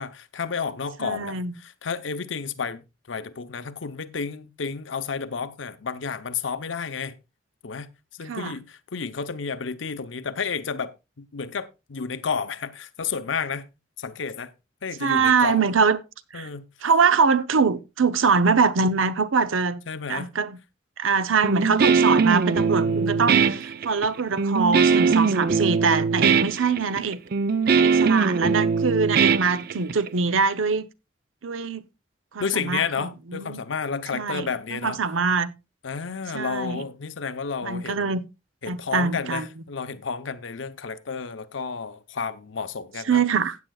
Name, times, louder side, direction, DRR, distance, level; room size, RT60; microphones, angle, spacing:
voice 1, 0.0-7.1 7.6-7.9 8.2-10.9 11.2-13.7 14.0-14.5 14.8-15.6 16.3-16.7 19.9-20.4 22.7-23.3 32.4-35.0 35.8-38.1 38.6-43.2, left 5 dB, 75° left, 0.7 m, -31 dB
voice 2, 1.0-1.5 8.2-8.5 15.0-16.0 16.3-16.5 16.8-19.8 20.1-20.6 21.0-27.2 27.7-30.9 31.4-31.8 32.3-33.6 34.1-35.5 36.3-36.8 37.6-38.2 38.7-39.5 43.1-43.6, right 5 dB, 90° right, 0.7 m, -23 dB
Guitar, 21.4-30.1, right 5 dB, 50° right, 0.4 m, -21 dB
15.5 x 8.4 x 2.3 m
head